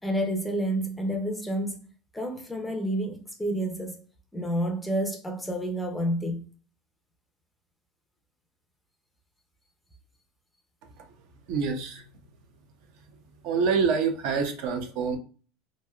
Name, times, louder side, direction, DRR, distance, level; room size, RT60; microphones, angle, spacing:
voice 1, 0.0-1.8 2.1-4.0 4.3-6.4, right 1 dB, 5° left, 0.5 m, -29 dB
voice 2, 11.5-12.1 13.4-15.2, right 5 dB, 60° right, 0.6 m, -26 dB
3.2 x 2.5 x 2.3 m
supercardioid pair, 150°, 0 cm